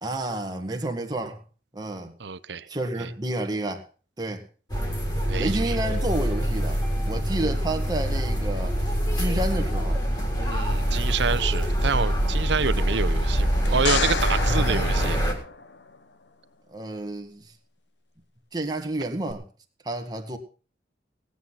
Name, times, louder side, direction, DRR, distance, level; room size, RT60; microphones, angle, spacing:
voice 1, 0.0-1.4 1.7-2.1 2.7-3.8 4.2-4.5 5.4-8.8 9.2-10.0 16.7-17.5 18.5-19.4 19.9-20.4, right 1 dB, 20° right, 3 dB, 1.8 m, -30 dB
voice 2, 2.2-2.7 3.0-3.1 5.3-5.8 10.4-15.2, right 5 dB, 75° right, 15 dB, 0.7 m, -28 dB
sound 1, 4.7-15.3, equal, 20° left, 3.5 m, -25 dB
sound 2, 13.7-16.0 19.3-19.4, left 5 dB, 75° left, 1.1 m, -30 dB
18.5 x 8.2 x 5.7 m, 0.38 s
head